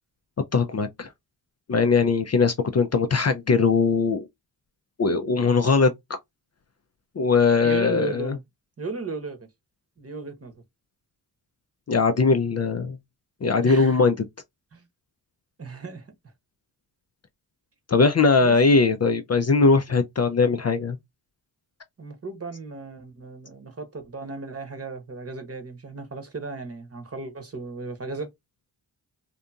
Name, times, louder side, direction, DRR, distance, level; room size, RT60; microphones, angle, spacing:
voice 1, 0.5-1.1 1.7-4.3 5.0-5.9 7.2-8.4 11.9-13.0 13.4-14.1 17.9-21.0, left 4 dB, 35° left, 0.5 m, -20 dB
voice 2, 7.6-8.4 8.8-9.5 10.0-10.6 13.6-14.0 14.7-14.9 15.6-16.1 18.4-18.6 22.0-28.3, right 3 dB, 30° right, 1.0 m, -35 dB
2.7 x 2.5 x 2.3 m
cardioid pair, 55°, 45 cm